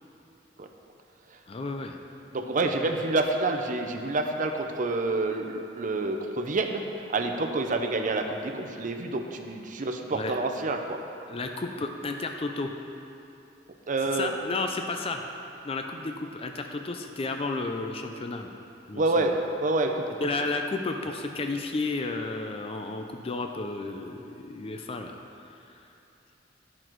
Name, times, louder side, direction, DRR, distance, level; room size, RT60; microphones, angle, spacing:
voice 1, 1.5-2.0 9.8-10.3 11.3-12.7 14.0-15.2 15.6-18.5 18.9-19.3 20.2-25.2 25.4-25.8, left 3 dB, 30° left, 4 dB, 0.5 m, -32 dB
voice 2, 2.3-6.8 7.1-11.0 13.9-14.3 19.0-20.1, right 2 dB, 45° right, 4 dB, 0.6 m, -28 dB
10.0 x 6.0 x 4.6 m, 2.8 s
head